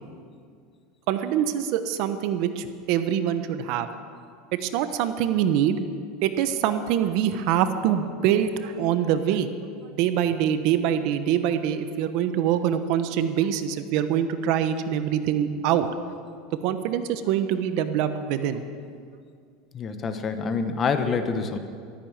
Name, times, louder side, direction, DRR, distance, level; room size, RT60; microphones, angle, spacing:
voice 1, 1.1-3.9 4.5-5.8 6.2-9.5 9.9-15.9 16.6-18.6, right 9 dB, 55° right, 10 dB, 1.0 m, -24 dB
voice 2, 19.7-21.6, left 5 dB, 25° left, 8 dB, 1.0 m, -26 dB
14.0 x 13.5 x 7.2 m, 2.2 s
supercardioid pair, 150°, 0 cm